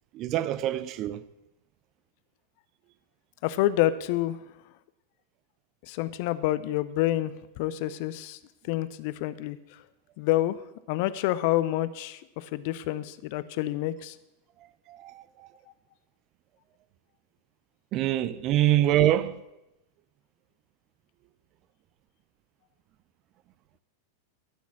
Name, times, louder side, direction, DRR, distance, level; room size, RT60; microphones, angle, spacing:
voice 1, 0.1-1.2 14.9-15.5 17.9-19.4, right 13 dB, 35° right, 0.5 m, -25 dB
voice 2, 3.4-4.4 5.9-8.4 8.7-9.6 10.2-10.6 10.9-14.1, left 15 dB, 45° left, 0.6 m, -28 dB
12.0 x 6.2 x 8.4 m
figure-of-eight pair, 90°, 0 cm